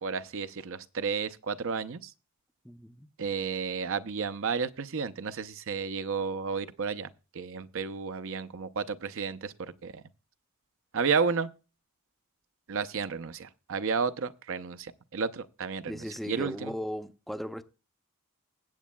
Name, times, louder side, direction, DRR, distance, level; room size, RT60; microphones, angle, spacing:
voice 1, 0.0-2.1 3.2-7.1 7.3-10.0 10.9-11.5 12.7-16.7, right 5 dB, 65° right, 0.7 m, -32 dB
voice 2, 2.6-3.1 15.9-17.6, equal, ahead, 0.6 m, -37 dB
21.0 x 8.4 x 2.2 m
head